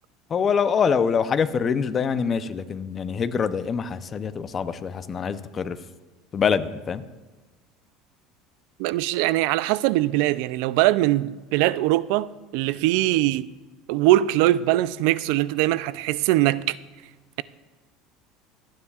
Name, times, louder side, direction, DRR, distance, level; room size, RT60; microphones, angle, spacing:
voice 1, 0.3-5.8 6.3-7.0, left 6 dB, 30° left, 0.6 m, -24 dB
voice 2, 8.8-13.5 13.9-16.8, right 16 dB, 75° right, 0.4 m, -22 dB
27.5 x 9.8 x 2.4 m
supercardioid pair, 130°, 0 cm